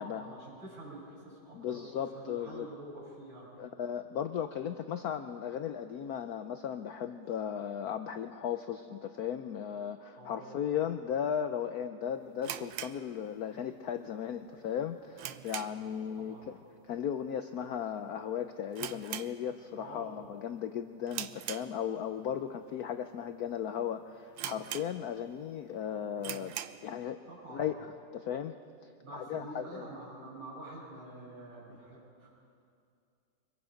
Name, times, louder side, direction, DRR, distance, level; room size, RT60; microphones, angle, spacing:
voice 1, 0.0-3.5 10.2-10.6 15.7-16.5 19.8-20.2 27.2-27.7 29.0-32.3, right 1 dB, 45° right, -7 dB, 8.5 m, -47 dB
voice 2, 1.5-2.7 3.6-16.6 16.9-26.5 26.8-27.2 27.5-27.7 28.1-28.6 29.1-29.9, left 9 dB, 70° left, 8 dB, 0.9 m, -36 dB
sound 1, 12.4-13.8 14.0-14.1 14.6-16.0 16.3-16.6 16.9-17.0 17.6-17.9 18.2-18.3 18.7-19.9 20.2-20.5 21.1-22.2 22.8-22.9 23.5-23.6 23.8-23.9 24.4-25.3 25.7-25.8 26.2-26.9, right 11 dB, 75° right, 1.4 m, -41 dB
24.5 x 23.0 x 5.1 m, 2.4 s
omnidirectional pair, 2.2 m